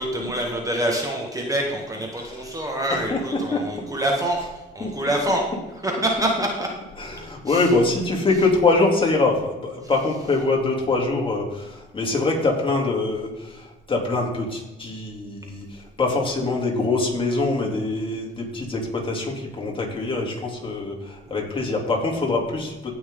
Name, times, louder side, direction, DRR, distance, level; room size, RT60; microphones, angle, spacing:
voice 1, 0.0-4.4 4.8-5.4 5.8-6.7 7.5-7.7, right 1 dB, 15° right, 0 dB, 2.0 m, -25 dB
voice 2, 2.1-2.5 2.9-3.6 4.8-4.9 7.0-23.0, left 3 dB, 25° left, -1 dB, 3.3 m, -24 dB
17.0 x 6.1 x 3.9 m, 1.1 s
cardioid pair, 90°, 20 cm